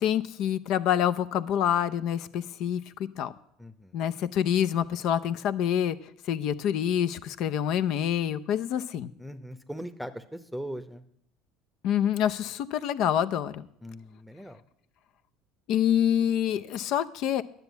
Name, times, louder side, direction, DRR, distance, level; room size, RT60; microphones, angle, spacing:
voice 1, 0.0-2.8 3.2-3.3 3.9-6.0 6.3-9.1 11.8-13.7 15.7-17.4, left 10 dB, 65° left, 14 dB, 0.6 m, -26 dB
voice 2, 3.6-4.0 9.2-11.0 13.8-14.6, equal, ahead, 10 dB, 0.9 m, -40 dB
10.5 x 6.9 x 8.2 m, 0.74 s
hypercardioid pair, 80°, 0 cm